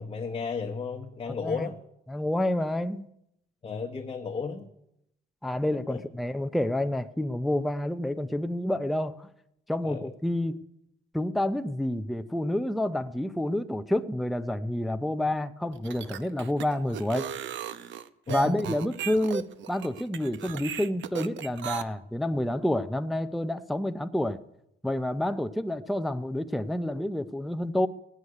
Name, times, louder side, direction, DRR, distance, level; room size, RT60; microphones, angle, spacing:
voice 1, 0.0-1.8 3.6-4.7 5.9-6.0 9.8-10.1 18.3-18.6, left 5 dB, 25° left, 3 dB, 0.9 m, -33 dB
voice 2, 1.3-1.7 2.1-3.1 5.4-9.3 9.7-10.6 11.1-17.3 18.3-24.4 24.8-27.9, left 1 dB, ahead, 8 dB, 0.5 m, -29 dB
sound 1, 15.7-21.8, right 9 dB, 75° right, 0.8 m, -36 dB
17.0 x 6.5 x 9.6 m, 0.83 s
cardioid pair, 150°, 20 cm